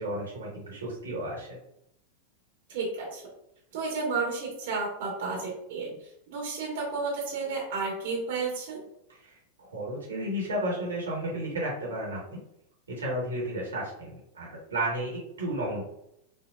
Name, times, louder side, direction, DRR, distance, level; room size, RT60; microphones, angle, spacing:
voice 1, 0.0-1.6 9.1-12.4 12.9-15.8, right 1 dB, 70° right, -4 dB, 1.5 m, -33 dB
voice 2, 2.7-3.2 3.7-8.8, right 4 dB, 55° right, -3 dB, 1.4 m, -32 dB
5.5 x 2.7 x 2.4 m, 0.77 s
figure-of-eight pair, 90°, 0 cm